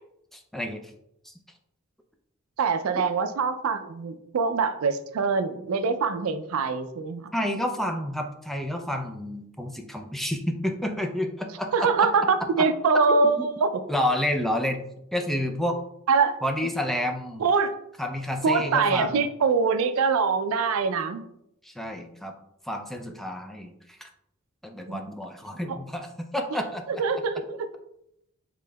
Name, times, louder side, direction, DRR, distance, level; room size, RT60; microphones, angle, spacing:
voice 1, 0.3-0.8 1.3-1.4 7.3-12.1 12.6-12.7 13.1-13.5 13.9-14.8 15.1-15.8 16.4-17.4 18.0-19.3 21.6-22.3 22.7-23.7 24.0-24.1 24.6-26.8, left 1 dB, ahead, 3 dB, 0.3 m, -29 dB
voice 2, 2.6-7.3 11.7-13.8 16.1-16.4 17.4-17.7 18.4-21.2 24.9-25.1 26.9-27.7, right 5 dB, 75° right, 10 dB, 0.4 m, -24 dB
5.1 x 3.7 x 2.2 m, 0.78 s
head